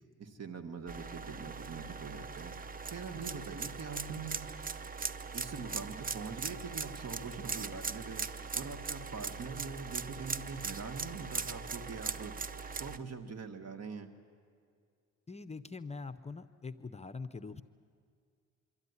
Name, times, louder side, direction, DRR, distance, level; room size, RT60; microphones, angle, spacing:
voice 1, 0.2-2.5 2.9-4.5 5.3-8.2 8.5-12.3 12.8-14.1, right 5 dB, 55° right, 6 dB, 1.8 m, -43 dB
sound 1, 0.9-13.0, right 5 dB, 30° right, 0.7 m, -40 dB
voice 2, 15.3-17.6, left 4 dB, 20° left, 11 dB, 0.6 m, -43 dB
24.5 x 13.0 x 9.7 m, 2.2 s
cardioid pair, 80°, 31 cm